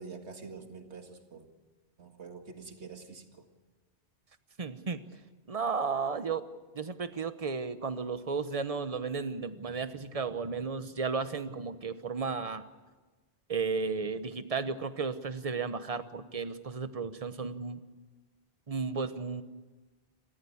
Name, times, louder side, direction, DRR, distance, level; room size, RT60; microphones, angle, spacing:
voice 1, 0.0-1.4 2.0-3.5, right 4 dB, 80° right, 5 dB, 2.2 m, -46 dB
voice 2, 4.6-5.0 5.5-6.4 6.7-12.6 13.5-17.8 18.7-19.4, right 5 dB, 35° right, 11 dB, 1.1 m, -34 dB
28.5 x 14.0 x 8.6 m, 1.2 s
omnidirectional pair, 1.1 m